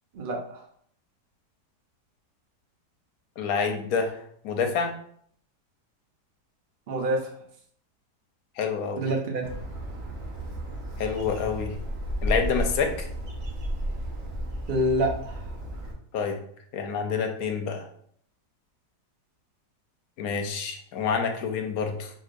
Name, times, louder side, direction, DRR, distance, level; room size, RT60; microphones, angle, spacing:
voice 1, 0.1-0.7 6.9-7.3 9.0-9.5 14.7-15.6, right 1 dB, 70° right, 0 dB, 0.5 m, -27 dB
voice 2, 3.4-4.1 4.4-4.9 8.6-9.0 11.0-11.8 12.2-13.1 16.1-16.4 16.7-17.9 20.2-22.1, left 5 dB, 70° left, 5 dB, 1.0 m, -27 dB
Bird, 9.4-15.9, equal, 55° right, 0.8 m, -33 dB
4.7 x 2.7 x 2.5 m, 0.63 s
omnidirectional pair, 1.8 m